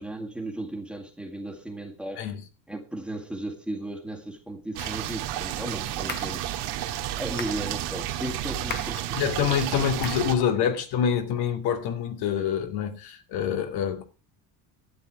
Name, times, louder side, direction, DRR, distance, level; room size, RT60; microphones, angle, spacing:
voice 1, 0.0-2.3 2.7-6.4 7.2-9.2, right 1 dB, 5° right, 1.8 m, -35 dB
sound 1, 4.8-5.1 6.1-6.4 7.4-7.6 8.7-9.0 10.0-10.3, left 6 dB, 25° left, 1.2 m, -37 dB
sound 2, 4.8-10.4, right 12 dB, 80° right, 1.9 m, -31 dB
voice 2, 9.1-14.0, left 8 dB, 80° left, 2.4 m, -26 dB
12.0 x 9.4 x 4.7 m
cardioid pair, 155°, 38 cm